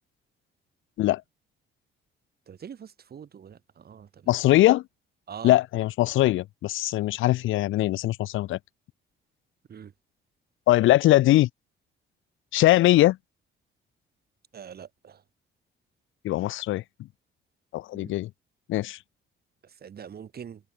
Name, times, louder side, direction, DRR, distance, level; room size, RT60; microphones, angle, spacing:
voice 1, 2.5-3.6 3.8-4.1 5.3-5.5 9.7-9.9 14.5-14.9 17.9-18.1 19.8-20.6, right 8 dB, 50° right, 3.3 m, -42 dB
voice 2, 4.3-4.8 5.4-8.6 10.7-11.5 12.5-13.2 16.2-16.8 17.7-18.3 18.7-19.0, left 15 dB, 80° left, 0.8 m, -21 dB
open air
cardioid pair, 90°, 20 cm